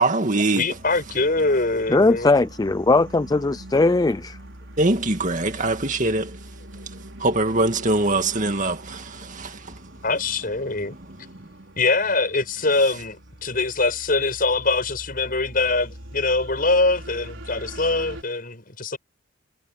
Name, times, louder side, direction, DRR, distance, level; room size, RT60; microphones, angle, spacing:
voice 1, 0.0-0.6 4.8-6.4 7.2-9.8, right 2 dB, 40° right, 2.2 m, -22 dB
voice 2, 0.5-2.3 10.0-11.0 11.8-19.0, left 3 dB, 45° left, 6.2 m, -23 dB
sound 1, 0.7-18.2, right 1 dB, 75° right, 4.8 m, -42 dB
voice 3, 1.9-4.4, left 3 dB, 20° left, 0.4 m, -19 dB
head